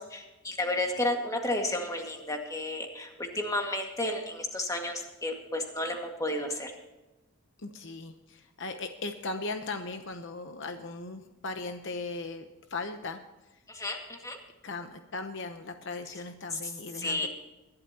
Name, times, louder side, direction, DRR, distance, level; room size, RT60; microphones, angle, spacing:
voice 1, 0.0-6.7 13.7-14.4 16.5-16.6 17.0-17.3, left 1 dB, 15° left, 2 dB, 2.0 m, -32 dB
voice 2, 7.6-13.2 14.6-17.3, left 3 dB, 55° left, 7 dB, 0.9 m, -38 dB
21.5 x 12.0 x 2.9 m, 1.1 s
head